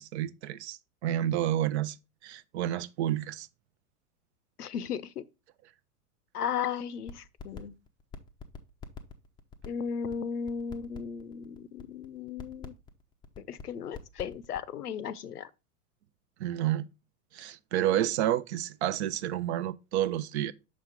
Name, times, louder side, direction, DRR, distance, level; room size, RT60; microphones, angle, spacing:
voice 1, 0.0-2.0 2.2-3.5 16.4-16.9 17.3-20.5, right 12 dB, 50° right, 0.5 m, -30 dB
voice 2, 4.6-5.2 6.3-7.8 9.7-12.7 13.5-15.5, left 7 dB, 85° left, 0.6 m, -35 dB
sound 1, 7.1-7.6 7.9-14.6, left 6 dB, 10° left, 0.4 m, -44 dB
6.2 x 5.0 x 3.4 m
figure-of-eight pair, 95°, 45 cm